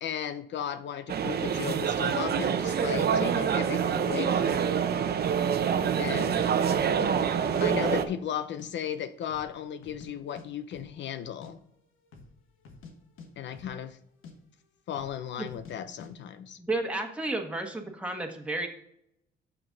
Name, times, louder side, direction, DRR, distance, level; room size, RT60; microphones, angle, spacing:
voice 1, 0.0-4.7 6.0-6.5 7.6-11.6 13.4-14.0 14.9-16.6, left 9 dB, 65° left, 12 dB, 0.6 m, -35 dB
sound 1, 1.1-8.0, right 7 dB, 55° right, 0.8 m, -26 dB
sound 2, 5.1-5.3 5.8-5.9 6.4-6.7 7.0-7.6 7.9-8.7 9.0-9.1 9.3-10.1 10.4-10.5 10.7-10.9 11.2-11.5 12.0-12.3 12.6-14.0 14.2-14.4 14.9-15.2 15.5-16.1, left 4 dB, 85° left, 1.3 m, -48 dB
voice 2, 16.6-18.7, right 2 dB, 5° right, 2 dB, 1.4 m, -32 dB
7.8 x 6.0 x 3.9 m, 0.74 s
cardioid pair, 90°, 20 cm